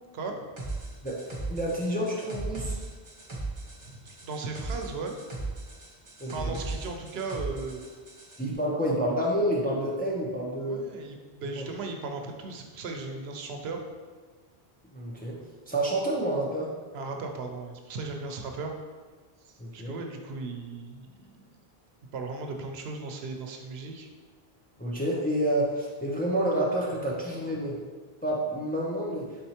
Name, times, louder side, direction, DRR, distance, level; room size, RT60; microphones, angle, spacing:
sound 1, 0.6-8.4, right 2 dB, 35° right, 0.7 m, -37 dB
voice 1, 1.0-2.7 6.2-6.5 8.4-10.8 11.5-11.7 14.9-15.4 15.7-16.7 19.6-19.9 24.8-27.8 28.2-29.3, right 1 dB, 15° left, -4 dB, 0.4 m, -29 dB
voice 2, 3.8-5.1 6.2-7.8 10.6-13.8 16.9-18.8 19.4-21.4 22.1-24.1, right 3 dB, 85° right, 3 dB, 0.8 m, -37 dB
4.3 x 3.9 x 2.8 m, 1.4 s
omnidirectional pair, 1.0 m